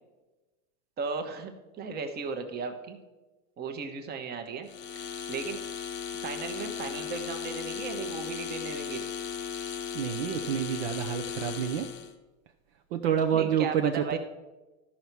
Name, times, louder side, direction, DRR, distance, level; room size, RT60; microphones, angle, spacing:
voice 1, 1.0-1.5 1.8-3.0 3.6-4.7 4.9-5.6 6.1-9.0 13.3-14.2, right 5 dB, 25° right, 6 dB, 1.0 m, -36 dB
sound 1, 4.7-12.1, left 8 dB, 25° left, 0.8 m, -36 dB
voice 2, 9.9-11.9 12.9-14.2, right 9 dB, 50° right, 6 dB, 0.7 m, -28 dB
13.0 x 5.6 x 4.6 m, 1.1 s
hypercardioid pair, 130°, 43 cm